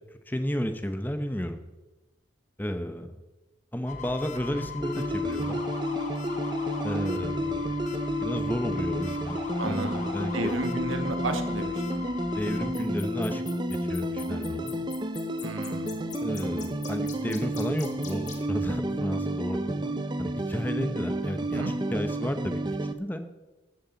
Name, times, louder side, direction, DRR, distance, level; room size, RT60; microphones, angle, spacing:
voice 1, 0.3-1.6 2.6-3.2 3.7-5.6 6.8-7.7 8.2-9.4 9.6-10.5 12.3-13.4 13.7-14.7 16.2-22.6 22.9-23.2, equal, 10° left, 8 dB, 0.9 m, -32 dB
sound 1, 3.9-18.4, left 5 dB, 35° left, 1.7 m, -41 dB
sound 2, 4.8-22.9, right 1 dB, 20° right, 0.7 m, -31 dB
voice 2, 9.6-12.1 15.4-16.0 21.5-21.7, right 2 dB, 85° right, 7 dB, 1.7 m, -33 dB
14.0 x 13.5 x 4.1 m, 1.1 s
head